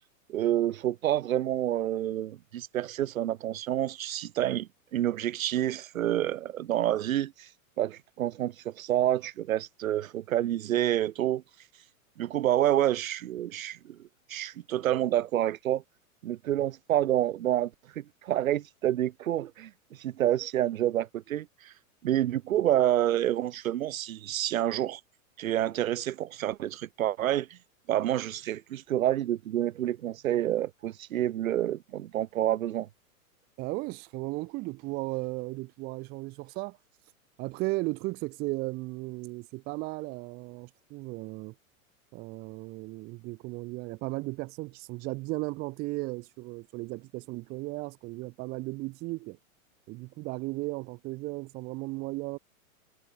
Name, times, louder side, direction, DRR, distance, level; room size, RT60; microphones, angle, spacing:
voice 1, 0.3-7.5 7.8-11.4 12.2-15.8 16.2-19.7 20.0-21.7 22.0-25.0 25.4-27.6 27.9-32.9, right 12 dB, 75° right, 2.2 m, -28 dB
voice 2, 33.6-36.8 37.4-41.5 42.1-49.4 49.9-52.4, right 23 dB, 25° right, 0.6 m, -35 dB
hypercardioid pair, 145°, 42 cm